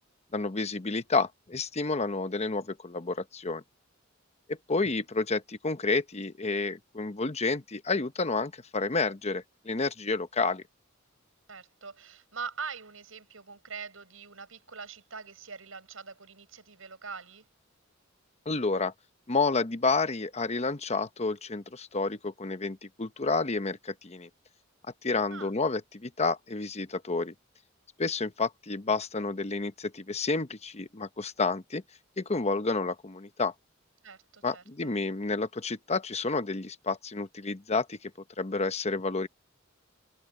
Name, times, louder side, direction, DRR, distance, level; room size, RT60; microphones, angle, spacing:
voice 1, 0.3-3.6 4.5-10.6 18.5-18.9 19.3-24.3 25.0-27.3 28.0-31.8 32.2-33.5 34.4-38.1 38.4-39.3, left 3 dB, 35° left, 1.0 m, -30 dB
voice 2, 11.5-17.5 25.3-25.5 34.0-34.9, right 5 dB, 85° right, 6.4 m, -43 dB
head